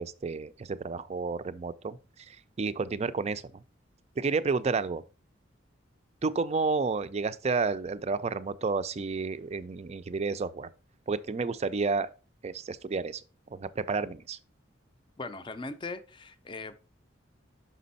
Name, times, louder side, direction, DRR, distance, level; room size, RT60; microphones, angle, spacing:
voice 1, 0.0-2.0 2.3-3.6 4.2-5.0 6.2-10.7 11.1-12.1 12.4-13.2 13.5-14.4, right 4 dB, 35° right, 0.4 m, -31 dB
voice 2, 15.2-16.9, left 3 dB, 25° left, 0.5 m, -40 dB
6.1 x 5.1 x 4.0 m
head